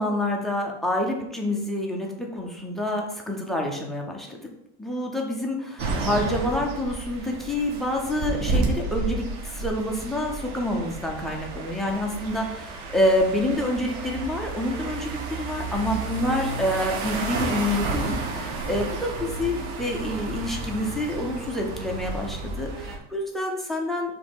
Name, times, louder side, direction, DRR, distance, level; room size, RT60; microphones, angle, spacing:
voice 1, 0.0-4.4 4.8-24.1, left 1 dB, ahead, -1 dB, 0.3 m, -27 dB
sound 1, 5.8-23.0, right 3 dB, 45° right, 1.2 m, -31 dB
7.0 x 3.2 x 5.1 m, 0.81 s
supercardioid pair, 175°, 35 cm